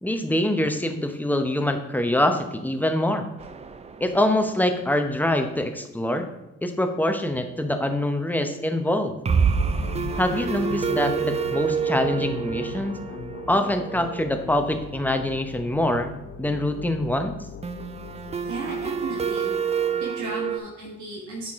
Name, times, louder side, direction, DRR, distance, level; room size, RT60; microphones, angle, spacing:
voice 1, 0.0-3.3 4.0-6.3 6.6-9.2 10.2-12.9 13.5-16.1 16.4-17.3, left 1 dB, 5° left, 6 dB, 0.8 m, -24 dB
sound 1, 3.4-4.6 4.9-5.0 5.3-5.4 9.2-14.9 17.6-20.6, right 6 dB, 20° right, 0.4 m, -28 dB
sound 2, 9.4-20.0, left 6 dB, 45° left, 0.8 m, -39 dB
voice 2, 18.4-19.5 20.0-21.5, right 3 dB, 75° right, -3 dB, 1.5 m, -34 dB
8.6 x 4.8 x 3.6 m, 0.91 s
cardioid pair, 90°, 30 cm